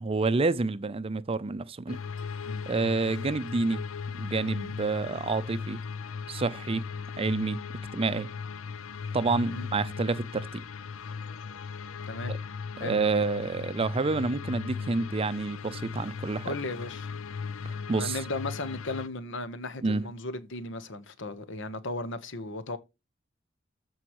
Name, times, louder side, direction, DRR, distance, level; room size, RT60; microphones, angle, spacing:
voice 1, 0.0-2.0 2.7-3.8 4.2-5.8 6.3-6.8 7.2-7.7 7.9-8.3 9.1-10.6 12.3-12.4 12.8-16.5 17.6-18.2 19.8-20.1, right 3 dB, 30° right, 0.5 m, -28 dB
sound 1, 1.9-19.1, left 5 dB, 85° left, 0.5 m, -37 dB
voice 2, 16.4-17.1 17.9-22.8, left 2 dB, 65° left, 1.1 m, -36 dB
14.0 x 4.7 x 3.1 m
head